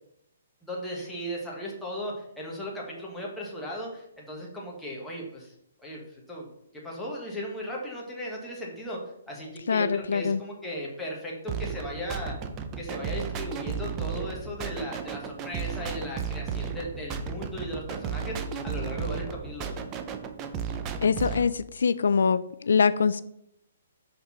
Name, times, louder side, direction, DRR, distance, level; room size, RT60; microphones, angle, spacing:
voice 1, 0.6-5.5 5.8-6.0 6.3-6.5 6.7-9.0 9.3-12.3 12.8-19.8, equal, 5° left, -4 dB, 1.4 m, -36 dB
voice 2, 9.7-10.4 21.0-23.2, left 5 dB, 80° left, 15 dB, 0.4 m, -24 dB
sound 1, 11.5-21.5, right 6 dB, 20° right, 0.5 m, -34 dB
6.5 x 4.5 x 5.8 m, 0.77 s
hypercardioid pair, 170°, 0 cm